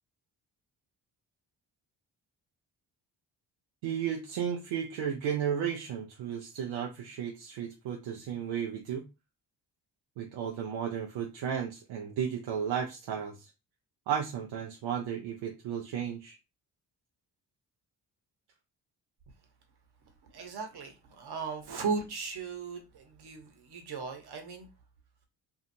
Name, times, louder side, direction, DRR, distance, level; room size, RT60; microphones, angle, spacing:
voice 1, 3.8-9.0 10.2-13.5 14.1-16.4, right 8 dB, 70° right, 0.7 m, -34 dB
voice 2, 20.3-24.7, right 5 dB, 50° right, 1.1 m, -37 dB
2.7 x 2.4 x 2.7 m
hypercardioid pair, 40°, 48 cm